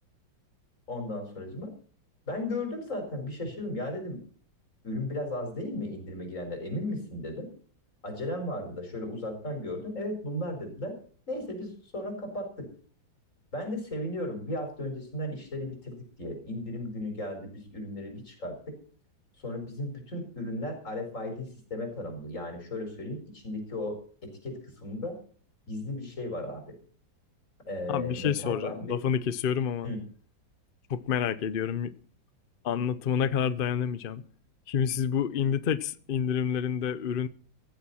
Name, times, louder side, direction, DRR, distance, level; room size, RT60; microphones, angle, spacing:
voice 1, 0.9-1.7 2.3-4.2 4.8-7.5 8.0-11.0 11.3-12.7 13.5-18.8 19.4-25.2 25.7-26.8 27.7-29.0 29.8-30.0, left 1 dB, 40° left, 5.4 m, -35 dB
voice 2, 27.9-29.9 30.9-31.9 32.6-34.2 34.7-37.3, left 8 dB, 80° left, 0.4 m, -28 dB
15.5 x 14.5 x 4.3 m
omnidirectional pair, 2.0 m